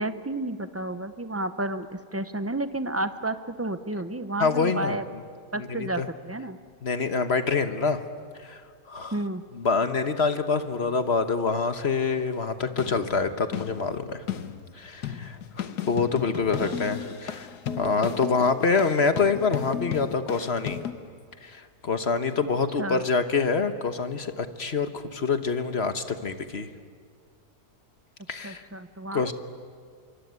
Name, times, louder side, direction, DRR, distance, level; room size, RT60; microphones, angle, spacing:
voice 1, 0.0-5.0 5.5-6.6 9.1-9.4 16.6-16.8 22.8-23.0 28.4-29.3, right 2 dB, 20° right, 11 dB, 0.3 m, -31 dB
voice 2, 4.4-5.0 5.7-6.1 6.8-8.0 8.4-8.6 8.9-9.2 9.5-14.2 14.7-17.5 17.8-20.8 21.4-26.7 28.3-28.6 29.1-29.3, left 4 dB, 45° left, 9 dB, 1.3 m, -26 dB
sound 1, 12.6-20.9, left 8 dB, 75° left, 1.6 m, -35 dB
25.5 x 24.0 x 9.5 m, 2.1 s
omnidirectional pair, 1.7 m